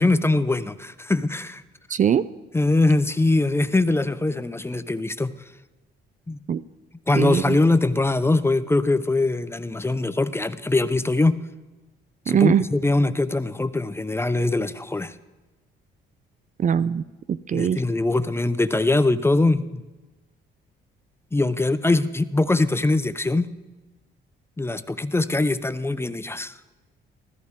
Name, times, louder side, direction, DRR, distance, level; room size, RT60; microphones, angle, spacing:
voice 1, 0.0-1.6 2.5-5.3 6.3-6.4 7.1-11.4 12.3-15.1 17.5-19.8 21.3-23.5 24.6-26.5, left 2 dB, 10° left, 14 dB, 0.5 m, -22 dB
voice 2, 1.9-2.3 6.5-6.6 7.1-7.6 12.3-12.6 16.6-17.8, right 8 dB, 40° right, 17 dB, 0.4 m, -21 dB
15.5 x 13.5 x 3.6 m, 1.1 s
cardioid pair, 90°, 20 cm